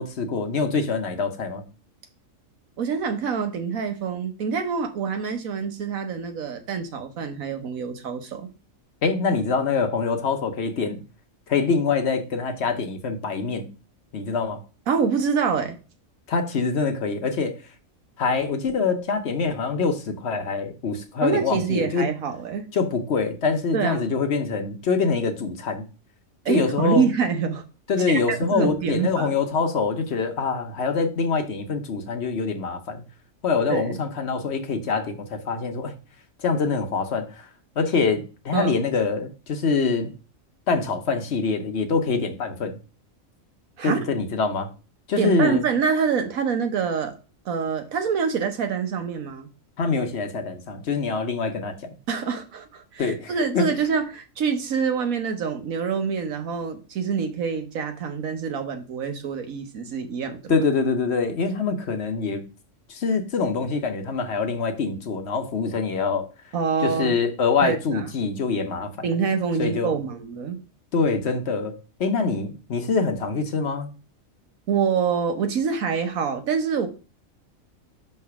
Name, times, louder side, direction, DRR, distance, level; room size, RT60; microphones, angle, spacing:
voice 1, 0.0-1.6 9.0-11.0 11.5-13.7 14.1-14.6 16.3-17.5 18.2-22.1 22.7-25.8 26.5-27.1 27.9-33.0 33.4-35.9 36.4-37.5 37.8-40.1 40.7-42.8 43.8-44.7 45.1-45.6 49.8-51.9 53.0-53.8 60.5-62.4 62.9-66.3 66.8-69.1 69.6-69.9 70.9-71.7 72.0-73.9, left 4 dB, 55° left, 1.0 m, -24 dB
voice 2, 2.8-8.5 14.9-15.8 21.2-22.7 23.7-24.2 26.4-27.6 28.1-29.3 33.7-34.0 38.5-38.8 43.8-44.0 45.2-47.1 47.4-49.5 52.1-60.5 66.5-67.2 67.6-68.0 69.0-70.6 74.7-76.9, right 6 dB, 90° right, 1.4 m, -26 dB
5.8 x 3.3 x 5.7 m
omnidirectional pair, 1.4 m